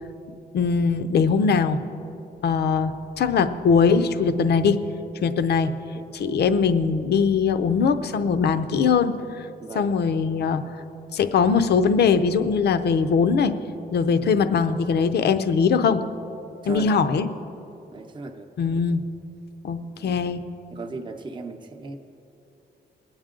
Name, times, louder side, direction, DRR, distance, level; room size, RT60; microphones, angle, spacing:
voice 1, 0.5-1.8 2.4-4.8 5.2-5.7 6.1-9.5 9.7-10.6 11.1-13.5 13.9-16.0 16.7-17.3 18.6-19.0 19.6-20.4, left 5 dB, 65° left, 10 dB, 0.6 m, -21 dB
voice 2, 9.6-9.9 14.1-14.3 16.6-17.2 17.9-18.5 19.9-20.2 20.7-22.0, right 3 dB, 25° right, 3 dB, 0.7 m, -37 dB
21.0 x 8.8 x 3.8 m, 3.0 s
wide cardioid pair, 180°, 18 cm